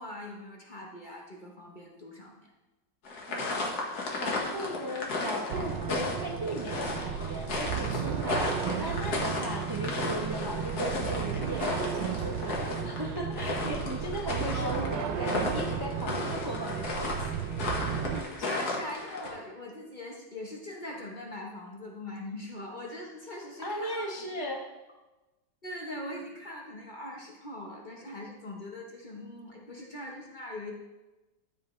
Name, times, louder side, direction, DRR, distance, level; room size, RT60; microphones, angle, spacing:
voice 1, 0.0-2.5 9.7-9.8 14.2-14.9 18.4-24.5 25.6-30.7, left 1 dB, 30° left, -1 dB, 1.1 m, -41 dB
sound 1, 3.0-19.3, left 3 dB, 60° left, 2.0 m, -34 dB
voice 2, 3.3-3.8 4.2-17.4 23.6-24.6, right 1 dB, 20° right, 0 dB, 0.6 m, -37 dB
sound 2, 5.5-18.2, right 8 dB, 85° right, 1.4 m, -34 dB
13.5 x 7.5 x 3.2 m, 1.1 s
omnidirectional pair, 1.9 m